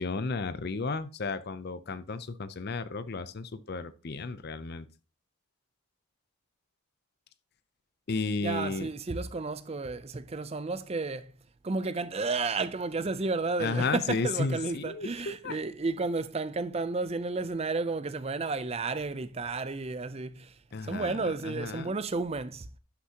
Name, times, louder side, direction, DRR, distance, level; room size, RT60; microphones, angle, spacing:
voice 1, 0.0-4.8 8.1-8.9 13.6-15.6 20.7-21.9, left 3 dB, 45° left, 0.6 m, -33 dB
voice 2, 8.4-11.3 11.6-20.5 20.8-22.8, right 3 dB, 25° right, 0.5 m, -32 dB
11.0 x 6.1 x 2.9 m
head